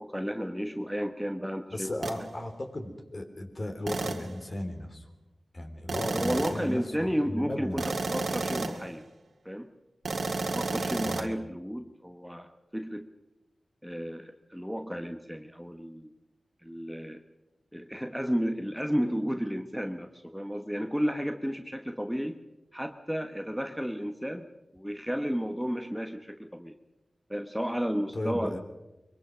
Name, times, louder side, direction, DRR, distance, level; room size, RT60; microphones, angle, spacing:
voice 1, 0.0-1.9 5.9-9.0 9.4-9.7 10.4-13.1 13.8-16.1 16.6-17.2 17.7-22.4 22.7-24.5 24.7-26.7 27.3-28.6, equal, ahead, 6 dB, 1.2 m, -32 dB
voice 2, 1.7-5.1 5.5-7.9 11.0-11.3 28.1-28.6, left 1 dB, 40° left, 5 dB, 3.5 m, -36 dB
sound 1, 2.0-2.2 3.9-4.3 5.9-6.7 7.8-8.9 10.1-11.3, right 3 dB, 70° right, 2.0 m, -31 dB
23.5 x 23.0 x 6.2 m, 0.99 s
wide cardioid pair, 80°, 0 cm